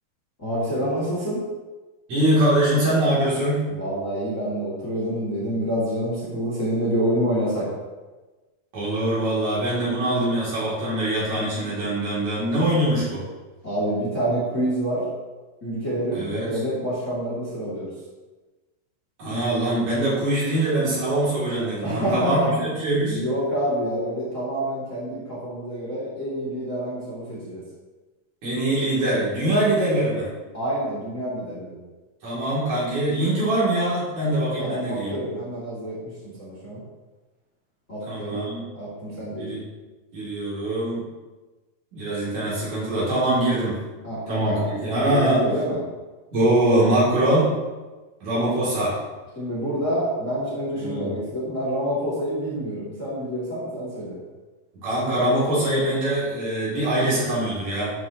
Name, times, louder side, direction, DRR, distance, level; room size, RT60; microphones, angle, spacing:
voice 1, 0.4-1.4 3.7-7.7 13.6-15.0 15.6-17.9 21.8-22.5 23.1-27.6 30.5-31.8 34.6-36.8 37.9-38.4 38.7-39.5 44.0-44.2 44.4-44.7 45.1-45.8 49.4-54.2, right 1 dB, 25° left, -8 dB, 2.3 m, -27 dB
voice 2, 2.1-3.7 8.7-13.3 16.1-16.6 19.2-23.2 28.4-30.3 32.2-35.1 38.0-38.6 39.2-39.6 40.1-41.0 41.9-43.8 44.3-45.4 46.3-47.6 48.2-49.0 50.7-51.2 54.8-57.9, right 1 dB, 50° right, -8 dB, 4.0 m, -23 dB
12.5 x 6.9 x 3.0 m, 1.2 s
omnidirectional pair, 4.3 m